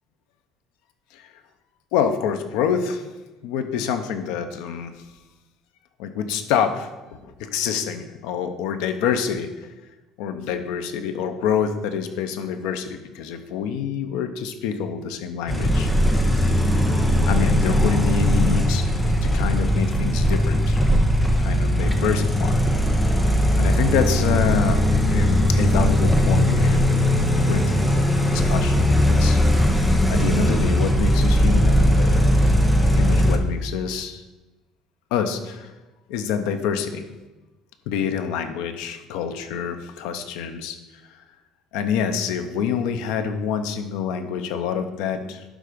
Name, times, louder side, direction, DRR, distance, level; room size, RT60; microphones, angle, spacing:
voice 1, 1.9-3.1 3.4-5.0 6.0-9.7 10.2-16.6 17.3-20.8 21.4-22.6 23.6-29.4 30.1-32.2 32.9-34.2 35.1-35.7 36.1-37.0 37.9-40.8 41.0-41.2 41.7-45.4, left 7 dB, 90° left, 8 dB, 0.8 m, -27 dB
sound 1, 15.5-33.4, equal, 5° left, 0.6 m, -19 dB
11.5 x 3.9 x 5.1 m, 1.1 s
cardioid pair, 170°, 0 cm